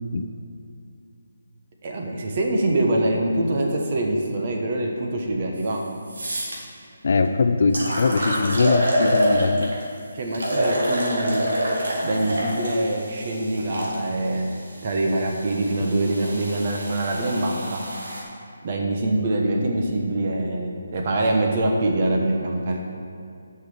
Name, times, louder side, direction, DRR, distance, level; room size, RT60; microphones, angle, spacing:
voice 1, 1.8-5.8 10.1-11.5 12.0-14.5 14.8-17.8 18.6-22.8, right 1 dB, 35° right, 1 dB, 1.1 m, -24 dB
sound 1, 5.6-5.7 6.1-6.6 7.2-7.3 7.7-9.8 10.3-14.0 14.8-18.2, right 1 dB, 80° right, 2.3 m, -26 dB
voice 2, 7.0-9.7 15.8-15.9, left 4 dB, 50° left, 7 dB, 0.4 m, -21 dB
6.5 x 5.9 x 6.9 m, 2.5 s
hypercardioid pair, 170°, 0 cm